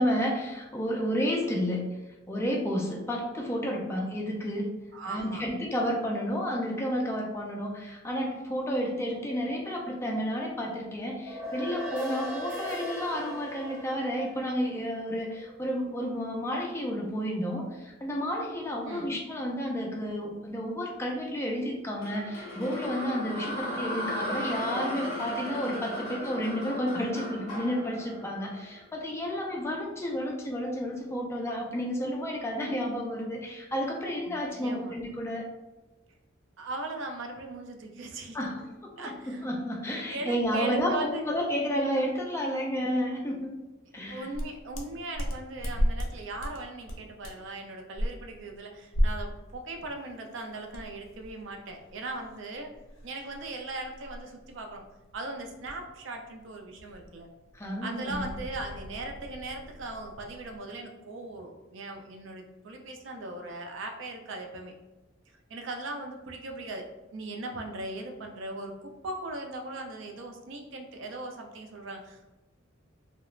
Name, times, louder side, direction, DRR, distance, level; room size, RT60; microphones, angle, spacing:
voice 1, 0.0-1.9 2.3-4.7 5.1-35.5 38.3-43.5 43.9-44.3 57.5-58.3, equal, 15° left, -1 dB, 0.4 m, -31 dB
voice 2, 4.9-5.5 18.8-19.1 34.3-35.0 36.6-38.4 39.0-39.4 40.1-41.2 44.1-52.7 53.0-54.8 55.1-57.3 57.8-64.7 65.5-66.9 67.1-72.3, right 2 dB, 65° right, 3 dB, 0.4 m, -39 dB
sound 1, 11.1-15.7, left 1 dB, 10° right, 0.8 m, -38 dB
sound 2, 22.0-29.2, equal, 35° left, 0.9 m, -36 dB
sound 3, 44.3-46.1 46.4-46.6 46.9-47.5 48.0-48.1 48.9-49.3 49.8-49.9 50.7-55.9 56.2-56.5 56.8-60.6, equal, 80° left, 0.5 m, -34 dB
3.0 x 2.0 x 2.3 m, 1.1 s
head